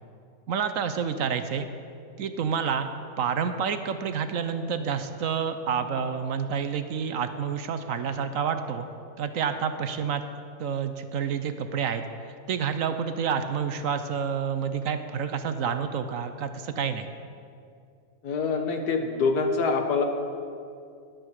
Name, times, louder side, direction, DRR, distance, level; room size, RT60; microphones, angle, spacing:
voice 1, 0.5-1.7 2.2-2.9 3.2-8.9 9.2-10.2 10.6-12.0 12.5-17.1, right 7 dB, 65° right, 9 dB, 1.0 m, -29 dB
voice 2, 18.2-20.0, left 4 dB, 80° left, 5 dB, 1.7 m, -25 dB
20.5 x 7.8 x 4.8 m, 2.4 s
omnidirectional pair, 1.6 m